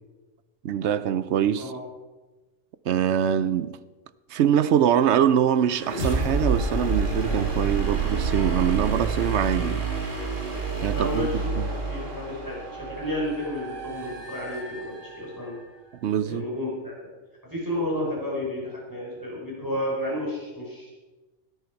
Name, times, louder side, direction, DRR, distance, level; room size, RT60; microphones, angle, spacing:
voice 1, 0.6-1.7 2.9-3.8 4.3-9.9 10.8-11.3 11.6-11.7 16.0-16.4, right 9 dB, 65° right, 0.8 m, -23 dB
sound 1, 5.7-15.4, right 4 dB, 40° right, 2.0 m, -28 dB
voice 2, 10.9-15.6 16.2-16.9 17.5-20.9, left 1 dB, 15° right, 4.2 m, -31 dB
17.0 x 10.5 x 4.6 m
omnidirectional pair, 1.3 m